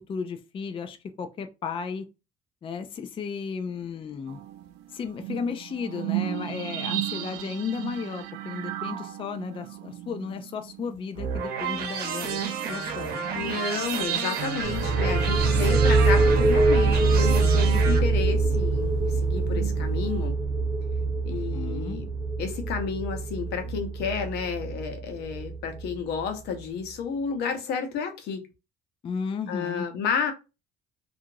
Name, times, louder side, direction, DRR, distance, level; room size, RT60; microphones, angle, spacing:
voice 1, 0.0-2.1 2.6-4.4 4.9-12.4 12.7-13.2 21.3-22.0 29.0-29.8, left 5 dB, 30° left, 0.4 m, -34 dB
sound 1, 4.3-11.3 11.8-11.9 12.2-17.1 19.3-20.3, right 13 dB, 90° right, 0.5 m, -36 dB
sound 2, 11.1-18.0, right 5 dB, 65° right, 0.8 m, -31 dB
voice 2, 13.3-20.4 21.2-22.1 22.4-28.5 29.5-30.3, left 6 dB, 80° left, 0.8 m, -31 dB
sound 3, 14.6-26.2, right 3 dB, 30° right, 0.7 m, -24 dB
2.8 x 2.5 x 2.6 m
cardioid pair, 110°, 17 cm